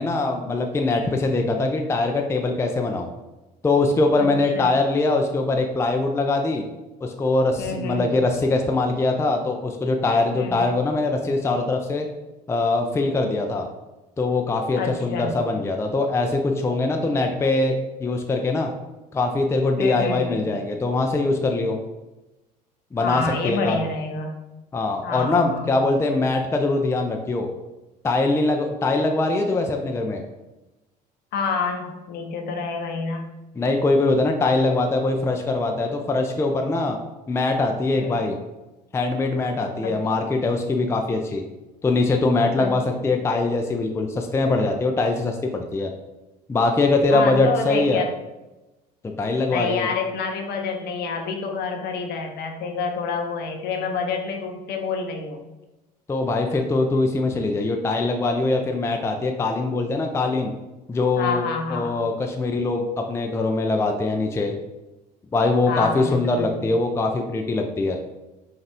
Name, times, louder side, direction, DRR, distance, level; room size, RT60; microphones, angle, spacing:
voice 1, 0.0-3.1 3.6-6.6 7.0-12.1 12.5-13.7 14.2-18.7 19.1-21.8 22.9-23.8 24.7-27.5 28.0-30.2 33.6-37.0 37.3-38.4 38.9-41.4 41.8-45.9 46.5-48.0 49.2-49.9 56.1-60.5 60.9-64.5 65.3-68.0, left 2 dB, 10° left, 3 dB, 0.5 m, -22 dB
voice 2, 7.6-8.2 10.3-10.7 14.8-15.3 19.8-20.5 23.0-24.3 25.0-25.8 31.3-33.3 38.0-38.4 39.8-40.0 42.6-42.7 43.0-43.1 47.1-48.1 49.5-55.4 61.2-61.9 65.7-66.7, left 4 dB, 50° left, 4 dB, 0.7 m, -28 dB
5.3 x 2.4 x 3.4 m, 1.0 s
hypercardioid pair, 65°, 21 cm